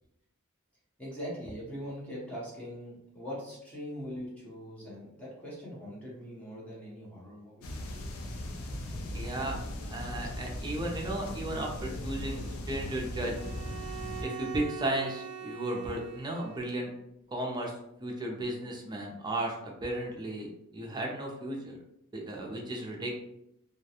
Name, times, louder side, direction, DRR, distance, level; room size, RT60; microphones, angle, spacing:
voice 1, 1.0-8.1, equal, 5° left, -6 dB, 0.8 m, -42 dB
sound 1, 7.6-14.2, left 1 dB, 75° left, 0.4 m, -38 dB
voice 2, 9.1-9.6 9.9-13.4 14.2-16.9 17.3-17.7 18.0-19.5 19.8-21.8 22.1-23.1, right 1 dB, 20° right, -1 dB, 0.5 m, -34 dB
Bowed string instrument, 13.3-16.8, right 10 dB, 65° right, 0.6 m, -43 dB
2.3 x 2.2 x 2.8 m, 0.82 s
head